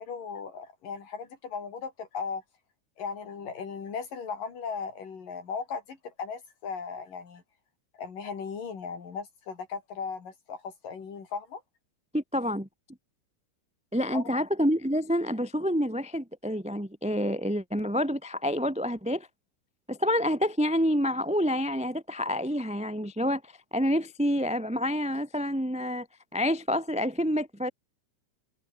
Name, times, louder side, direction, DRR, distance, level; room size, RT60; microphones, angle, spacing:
voice 1, 0.0-2.4 3.0-7.4 8.0-11.6 14.1-14.4, left 5 dB, 80° left, 5.6 m, -37 dB
voice 2, 12.1-12.7 13.9-19.3 19.9-26.1 26.3-27.7, equal, ahead, 1.9 m, -28 dB
omnidirectional pair, 3.8 m